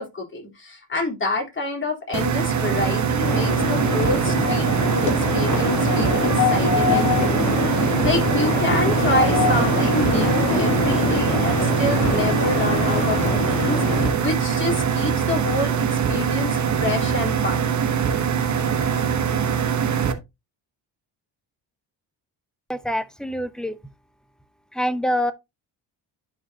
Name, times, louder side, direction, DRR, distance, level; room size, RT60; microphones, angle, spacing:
voice 1, 0.0-17.8, left 2 dB, 25° left, 3.7 m, -28 dB
sound 1, 2.1-20.1, right 7 dB, 40° right, 1.2 m, -23 dB
sound 2, 3.2-14.1, left 3 dB, 40° left, 3.6 m, -23 dB
voice 2, 22.7-23.8 24.7-25.3, equal, ahead, 0.7 m, -25 dB
11.5 x 4.9 x 2.8 m
cardioid pair, 100°, 45 cm